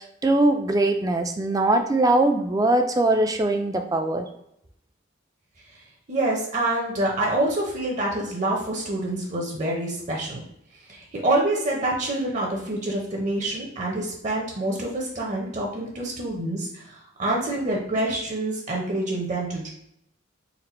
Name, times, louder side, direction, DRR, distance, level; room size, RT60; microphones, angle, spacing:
voice 1, 0.0-4.2, right 2 dB, 20° right, 5 dB, 0.4 m, -21 dB
voice 2, 6.1-10.4 10.9-19.7, right 1 dB, 40° right, -2 dB, 0.7 m, -26 dB
4.1 x 2.1 x 4.2 m, 0.76 s
head